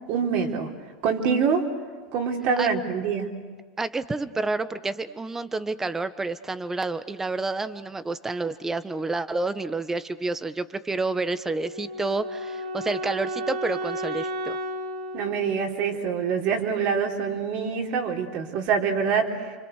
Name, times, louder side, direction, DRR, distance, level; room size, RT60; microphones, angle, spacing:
voice 1, 0.1-0.7 1.0-1.7 2.1-3.3 15.1-19.5, right 6 dB, 55° right, 1 dB, 3.9 m, -25 dB
voice 2, 3.8-14.6, right 3 dB, 15° right, 12 dB, 1.3 m, -29 dB
Wind instrument woodwind instrument, 11.4-16.5, equal, 85° right, 2.2 m, -33 dB
29.0 x 25.5 x 6.7 m, 1.5 s
hypercardioid pair, 100°, 3 cm